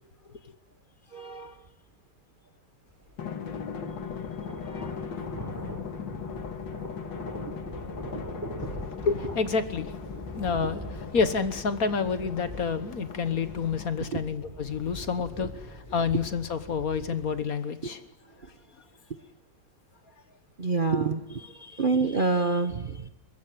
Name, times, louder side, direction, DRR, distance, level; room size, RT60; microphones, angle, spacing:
voice 1, 1.1-1.5 4.6-4.9 8.1-8.2 8.5-8.7 14.1-14.2 20.6-23.1, right 4 dB, 35° right, 8 dB, 0.8 m, -28 dB
sound 1, 3.0-17.5, equal, 10° right, 4.5 m, -42 dB
Drum, 3.2-14.2, left 7 dB, 75° left, 2.3 m, -39 dB
voice 2, 9.0-9.9 10.4-18.0, left 5 dB, 50° left, 12 dB, 1.6 m, -29 dB
23.0 x 21.0 x 9.2 m, 0.95 s
omnidirectional pair, 2.1 m